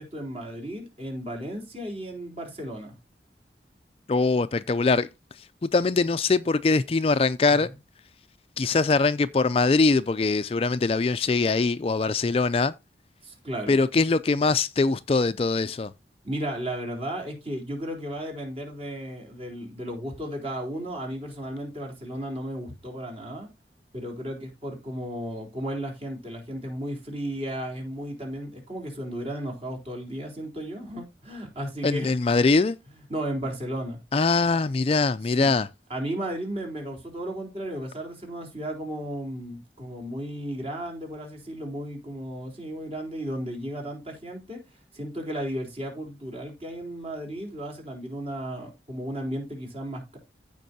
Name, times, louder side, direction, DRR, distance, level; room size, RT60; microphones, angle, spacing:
voice 1, 0.0-3.0 7.5-7.7 13.2-13.8 16.2-23.5 23.9-32.2 32.9-34.0 35.3-35.6 35.9-50.2, right 1 dB, 35° right, 3.8 m, -34 dB
voice 2, 4.1-5.1 5.6-7.7 8.6-12.7 13.7-15.9 31.8-32.8 34.1-35.7, left 3 dB, 35° left, 0.4 m, -22 dB
15.5 x 5.3 x 2.7 m
head